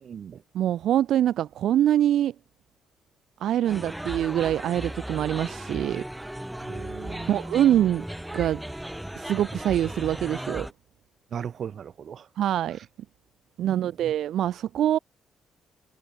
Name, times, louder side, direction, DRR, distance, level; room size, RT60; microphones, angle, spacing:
voice 1, 0.0-0.4 6.6-7.3 11.3-12.2 13.6-13.9, right 8 dB, 55° right, 6.4 m, -37 dB
voice 2, 0.5-2.3 3.4-6.0 7.3-8.0 8.3-8.6 9.1-10.7 12.4-12.8 13.6-15.0, right 11 dB, 75° right, 3.3 m, -24 dB
sound 1, 3.6-10.7, right 1 dB, 5° right, 3.5 m, -36 dB
cardioid pair, 90°, 0 cm